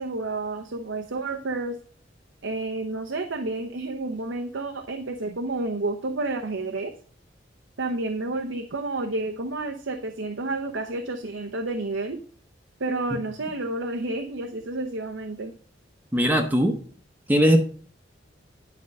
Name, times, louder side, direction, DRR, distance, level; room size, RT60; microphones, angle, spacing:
voice 1, 0.0-1.8 2.4-6.9 7.8-12.2 12.8-15.5, right 2 dB, 90° right, 4 dB, 0.8 m, -30 dB
voice 2, 16.1-16.7 17.3-17.7, equal, 10° right, 3 dB, 0.9 m, -19 dB
10.5 x 5.3 x 5.3 m, 0.42 s
head